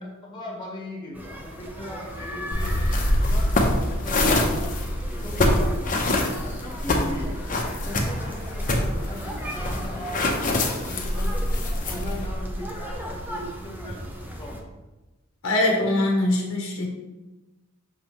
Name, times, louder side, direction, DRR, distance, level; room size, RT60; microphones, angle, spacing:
voice 1, 0.2-2.8 3.2-4.8 5.2-6.0 6.4-7.4 7.8-11.4 11.8-14.1 14.3-14.6, equal, 20° left, -1 dB, 1.2 m, -38 dB
sound 1, 1.1-14.6, equal, 10° right, 0.7 m, -35 dB
sound 2, 2.5-12.3, left 1 dB, 40° left, 0.8 m, -25 dB
voice 2, 15.4-16.9, left 1 dB, 65° left, 1 dB, 1.1 m, -22 dB
6.5 x 5.4 x 3.1 m, 1.1 s
head